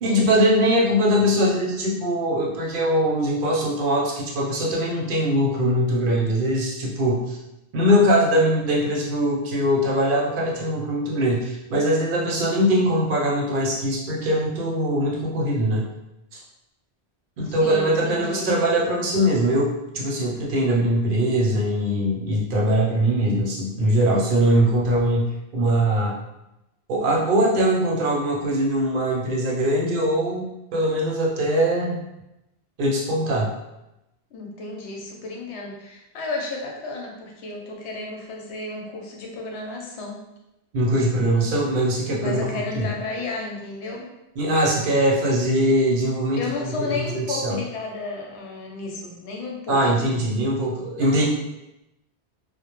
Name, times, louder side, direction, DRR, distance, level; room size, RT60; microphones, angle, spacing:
voice 1, 0.0-7.4 7.7-15.9 17.4-26.2 26.9-32.0 32.8-33.5 40.7-42.8 44.4-47.6 49.7-51.3, equal, 60° right, -3 dB, 0.7 m, -22 dB
voice 2, 17.6-18.5 34.3-40.2 42.2-44.1 46.3-50.2 51.0-51.2, left 3 dB, 85° left, -1 dB, 0.9 m, -33 dB
2.1 x 2.0 x 2.9 m, 0.92 s
omnidirectional pair, 1.1 m